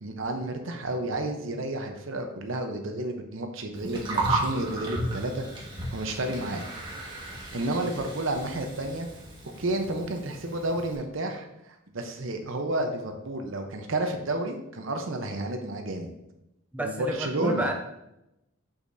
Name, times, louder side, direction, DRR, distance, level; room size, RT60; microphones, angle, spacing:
voice 1, 0.0-5.4 5.9-6.6 7.5-9.1 9.6-11.5 11.9-16.1 16.8-17.7, right 1 dB, 65° right, 5 dB, 0.8 m, -31 dB
Gurgling, 3.7-11.0, right 2 dB, 25° right, 1.4 m, -34 dB
voice 2, 16.7-17.7, right 1 dB, 5° right, 2 dB, 0.4 m, -30 dB
6.6 x 5.8 x 2.7 m, 0.87 s
head